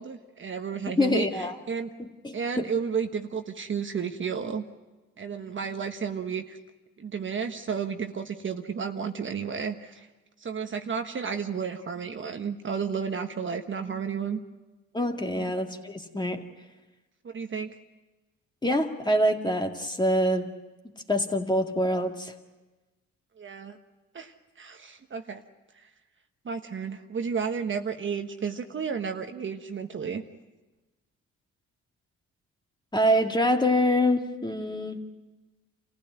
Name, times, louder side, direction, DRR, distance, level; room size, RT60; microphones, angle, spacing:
voice 1, 0.0-1.9 2.3-4.6 5.2-6.6 7.0-10.1 10.4-14.4 15.3-15.5 17.2-17.7 23.4-23.8 24.1-25.4 25.8-25.9 26.4-30.2, right 6 dB, 40° right, 6 dB, 1.3 m, -32 dB
voice 2, 1.0-1.6 2.0-2.7 14.9-16.4 18.6-20.5 21.1-22.3 32.9-35.0, equal, 15° left, 4 dB, 2.1 m, -25 dB
27.5 x 15.5 x 9.2 m, 1.2 s
cardioid pair, 90°, 30 cm